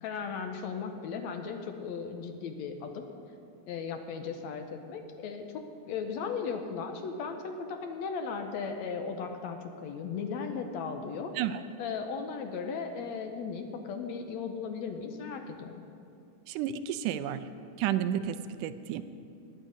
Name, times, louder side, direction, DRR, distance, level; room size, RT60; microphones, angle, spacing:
voice 1, 0.0-3.0 3.7-11.3 11.8-15.8, left 5 dB, 70° left, 5 dB, 1.8 m, -36 dB
voice 2, 16.5-17.4 17.8-19.0, right 10 dB, 80° right, 10 dB, 2.1 m, -31 dB
20.5 x 9.0 x 5.1 m, 2.6 s
omnidirectional pair, 3.8 m